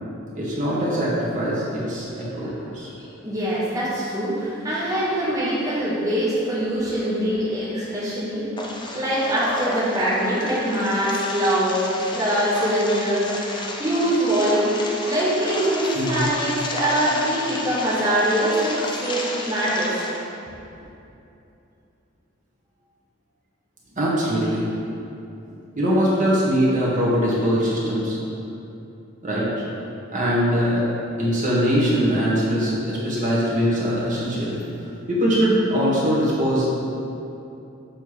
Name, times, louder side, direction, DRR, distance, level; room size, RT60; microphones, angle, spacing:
voice 1, 0.3-2.9 15.9-16.3 24.0-24.6 25.4-28.2 29.2-29.6 30.1-30.8 31.2-34.6 35.1-36.7, equal, 40° right, -7 dB, 1.5 m, -22 dB
voice 2, 3.2-20.0, right 1 dB, 15° right, -11 dB, 1.0 m, -23 dB
sound 1, 8.6-20.2, left 2 dB, 25° left, 0.6 m, -32 dB
7.7 x 3.3 x 4.8 m, 2.8 s
head